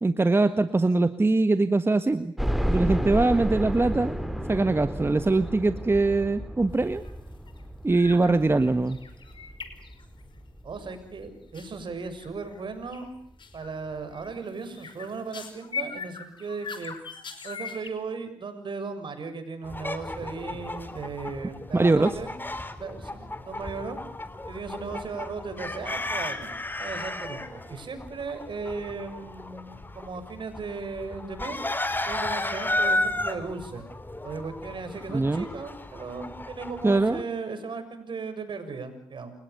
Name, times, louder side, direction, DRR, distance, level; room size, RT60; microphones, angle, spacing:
voice 1, 0.0-2.3 2.7-4.1 4.5-7.0 7.8-9.0 21.7-22.1 35.1-35.4 36.8-37.2, right 2 dB, 25° right, 11 dB, 1.5 m, -22 dB
sound 1, 2.4-11.3 11.8-11.9 12.2-12.3 13.5-13.6 13.9-14.0, equal, ahead, 4.3 m, -32 dB
sound 2, 6.7-7.1 7.4-7.6 7.9-8.4 8.6-10.4 11.5-11.7 12.2-12.6 12.9-13.1 13.4-13.7 14.1-17.9, left 5 dB, 55° left, 5.4 m, -40 dB
voice 2, 10.6-13.1 13.5-16.9 17.4-22.3 22.8-24.0 24.5-31.6 32.1-33.8 34.2-39.3, right 4 dB, 55° right, 9 dB, 6.8 m, -36 dB
sound 3, 19.6-37.2, left 1 dB, 20° left, 3.6 m, -34 dB
30.0 x 21.5 x 6.8 m, 0.63 s
hypercardioid pair, 45°, 10 cm